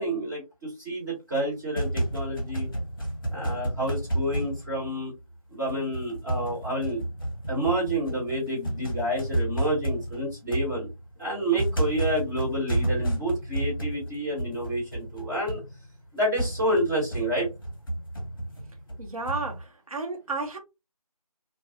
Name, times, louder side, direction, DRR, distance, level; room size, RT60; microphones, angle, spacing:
voice 1, 0.0-2.7 3.3-5.1 5.5-7.0 7.5-10.9 11.2-15.6 16.1-17.5, right 1 dB, 30° right, 1.7 m, -29 dB
sound 1, 1.5-5.3 5.7-19.6, right 1 dB, 35° left, 0.7 m, -31 dB
voice 2, 19.0-20.6, right 3 dB, 65° right, 1.0 m, -32 dB
2.6 x 2.3 x 2.6 m
figure-of-eight pair, 170°, 19 cm